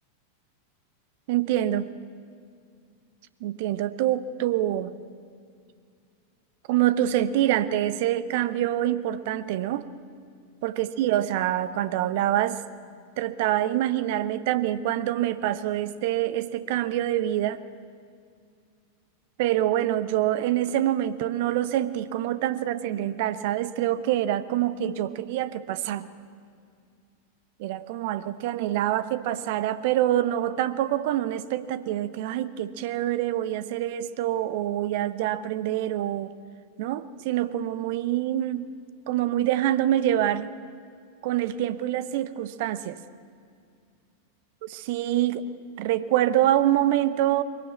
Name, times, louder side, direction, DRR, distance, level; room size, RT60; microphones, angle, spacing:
voice 1, 1.3-1.9 3.4-4.9 6.7-9.9 10.6-12.6 13.2-17.6 19.4-26.1 27.6-36.3 36.8-38.7 39.1-40.5 41.2-43.0 44.6-45.5 45.8-47.4, right 12 dB, 50° right, 14 dB, 0.9 m, -26 dB
22.0 x 17.5 x 9.1 m, 2.3 s
figure-of-eight pair, 90°, 0 cm